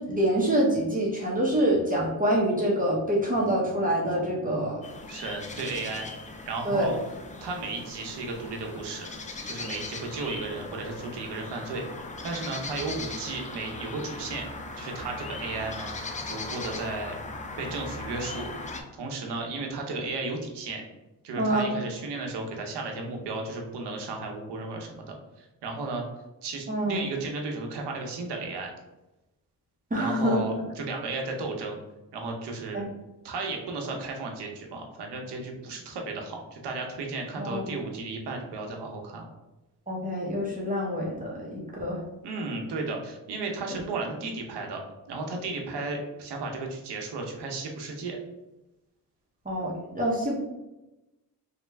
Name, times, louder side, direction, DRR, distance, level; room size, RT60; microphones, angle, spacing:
voice 1, 0.0-4.8 6.6-6.9 21.4-21.7 26.7-27.1 29.9-30.6 32.7-32.9 37.4-37.7 39.9-42.0 49.4-50.3, right 1 dB, 20° right, -4 dB, 0.8 m, -26 dB
sound 1, 4.8-18.8, left 3 dB, 20° left, 0.3 m, -39 dB
voice 2, 5.1-6.1 6.5-7.0 7.4-9.1 9.4-11.8 12.2-14.4 14.8-15.9 16.2-17.1 17.6-18.5 18.9-20.8 21.2-25.1 25.4-26.0 26.4-28.7 30.0-31.8 32.1-32.8 33.2-39.3 42.2-44.8 45.1-48.2, right 3 dB, 70° right, 2 dB, 0.8 m, -34 dB
3.1 x 2.2 x 3.3 m, 1.0 s
cardioid pair, 75°, 42 cm